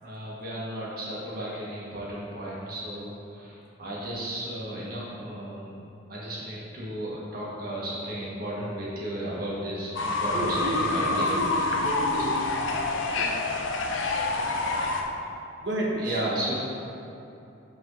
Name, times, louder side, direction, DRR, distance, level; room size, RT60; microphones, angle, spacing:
voice 1, 0.0-5.7 6.1-11.6 12.1-12.2 16.0-16.5, right 1 dB, 50° right, -7 dB, 1.6 m, -34 dB
Fowl / Bird, 10.0-15.0, left 2 dB, 85° left, 0.7 m, -27 dB
voice 2, 10.3-12.6 13.1-13.3 15.6-16.1, right 1 dB, 65° right, -2 dB, 1.3 m, -31 dB
6.2 x 4.9 x 5.5 m, 2.9 s
head